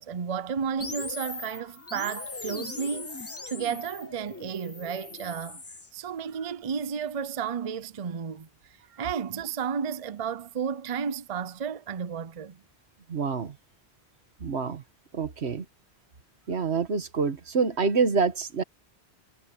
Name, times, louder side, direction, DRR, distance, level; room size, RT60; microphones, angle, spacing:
voice 1, 0.0-5.6 5.9-8.5 8.9-12.6, right 7 dB, 40° right, 0.6 m, -32 dB
sound 1, 0.8-5.9, left 3 dB, 20° left, 0.5 m, -39 dB
voice 2, 13.1-13.5 14.4-14.8 15.1-15.6 16.5-18.6, right 5 dB, 90° right, 1.6 m, -26 dB
omnidirectional pair, 1.1 m